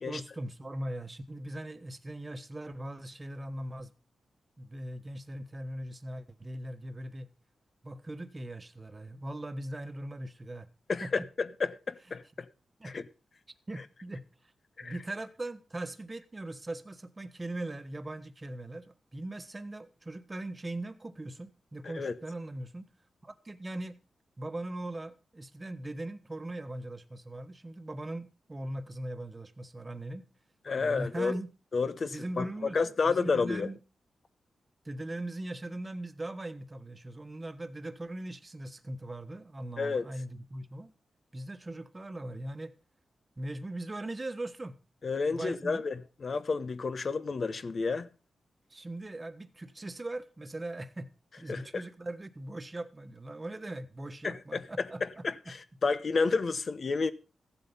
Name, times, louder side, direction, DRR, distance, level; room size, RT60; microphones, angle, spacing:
voice 1, 0.1-3.9 4.6-7.3 7.8-10.7 11.0-11.1 12.8-13.0 13.7-14.3 14.8-22.9 23.2-24.0 24.4-30.2 30.8-31.5 32.1-33.8 34.8-40.9 41.3-42.7 43.4-44.8 45.3-45.8 48.7-51.1 51.4-55.5, right 1 dB, 25° right, 1.3 m, -40 dB
voice 2, 10.9-12.5 12.8-13.0 14.8-14.9 21.8-22.2 30.7-31.4 31.7-33.7 39.8-40.1 45.0-45.9 46.2-48.1 51.5-51.8 54.2-57.1, left 4 dB, 50° left, 1.0 m, -31 dB
15.0 x 7.8 x 5.4 m
cardioid pair, 95°, 0 cm